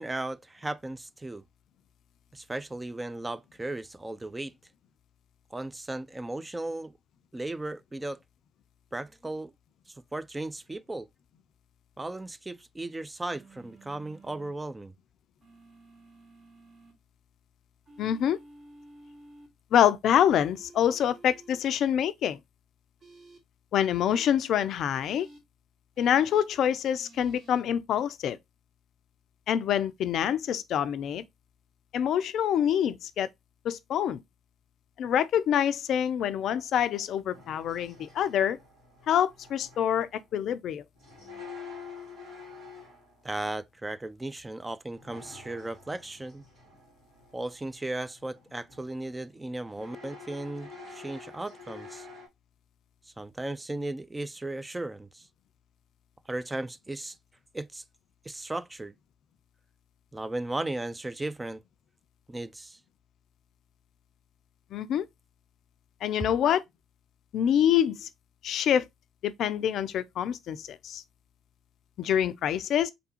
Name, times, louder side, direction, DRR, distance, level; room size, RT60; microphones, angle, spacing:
voice 1, 0.0-1.4 2.3-4.5 5.5-7.0 7.3-8.2 8.9-9.5 10.1-11.1 12.0-14.9 43.2-46.4 47.3-52.1 53.2-55.3 56.3-57.2 57.5-57.8 58.2-58.9 60.1-61.6 62.3-62.8 66.2-66.3, right 2 dB, 15° right, 0.4 m, -36 dB
sound 1, 13.3-14.5 15.4-16.9 17.9-19.5 20.2-21.6 23.0-23.4 24.1-24.3 25.0-25.4 26.0-26.4 26.9-27.6, right 2 dB, 50° right, 2.4 m, -53 dB
voice 2, 18.0-18.4 19.7-22.4 23.7-25.3 26.0-28.4 29.5-31.2 31.9-33.3 33.6-34.2 35.0-38.6 39.1-40.8 64.7-65.1 66.0-66.6 67.3-68.1 68.4-68.8 69.2-71.0 72.0-72.9, left 9 dB, 60° left, 0.4 m, -26 dB
sound 2, 37.3-40.2 41.0-43.2 45.0-48.4 48.7-49.1 49.6-52.3, left 4 dB, 70° right, 2.4 m, -48 dB
4.0 x 3.5 x 2.8 m
hypercardioid pair, 50°, 0 cm